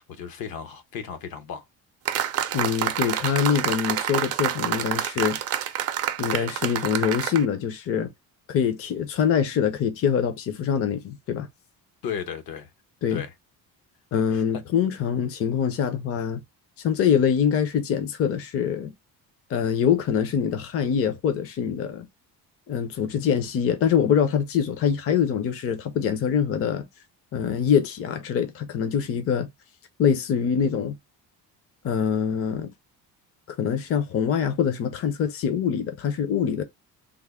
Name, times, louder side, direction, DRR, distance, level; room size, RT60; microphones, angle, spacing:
voice 1, 0.0-1.6 12.0-12.7 13.1-13.3 14.1-14.6, left 7 dB, 70° left, 0.8 m, -35 dB
sound 1, 2.1-7.4, right 10 dB, 45° right, 0.4 m, -27 dB
voice 2, 2.5-5.4 6.2-8.1 8.5-11.5 13.0-13.2 14.1-16.4 16.8-18.9 19.5-22.1 22.7-26.9 27.3-29.5 30.0-30.9 31.8-32.7 33.6-36.6, left 7 dB, 40° left, 0.6 m, -24 dB
3.4 x 2.0 x 3.5 m
cardioid pair, 150°, 37 cm